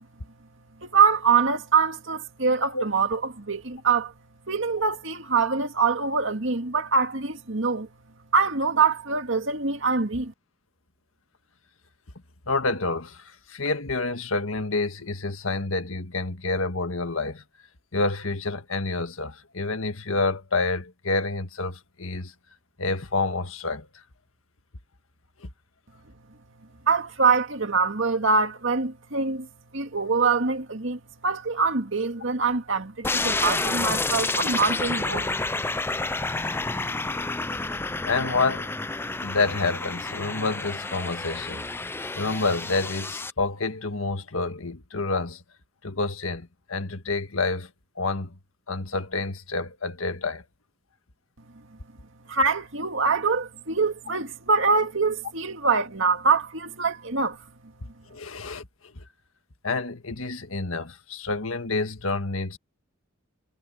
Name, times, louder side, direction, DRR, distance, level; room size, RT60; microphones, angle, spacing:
voice 1, 0.8-4.1 4.5-7.9 8.3-10.3 26.9-29.5 29.7-35.3 52.3-57.4, right 5 dB, 65° right, 2.2 m, -24 dB
voice 2, 12.5-17.4 17.9-22.3 22.8-23.9 25.4-25.5 38.0-38.7 39.2-41.7 42.2-45.4 45.8-47.7 48.0-48.3 48.7-50.4 58.1-58.7 59.6-62.6, left 3 dB, 85° left, 1.7 m, -28 dB
sound 1, 33.0-43.3, left 3 dB, 10° left, 0.5 m, -29 dB
head